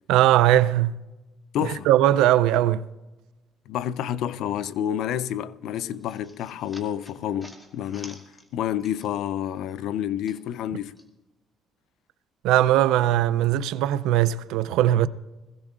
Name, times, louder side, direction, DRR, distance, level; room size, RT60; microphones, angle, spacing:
voice 1, 0.1-0.9 1.6-2.8 12.4-15.1, right 13 dB, 85° right, 0.4 m, -20 dB
voice 2, 1.5-1.9 3.7-8.2 8.5-10.9, left 10 dB, 75° left, 0.4 m, -29 dB
sound 1, 5.7-9.4 9.7-11.1, left 1 dB, 10° left, 2.1 m, -49 dB
21.5 x 16.0 x 2.4 m
cardioid pair, 95°, 0 cm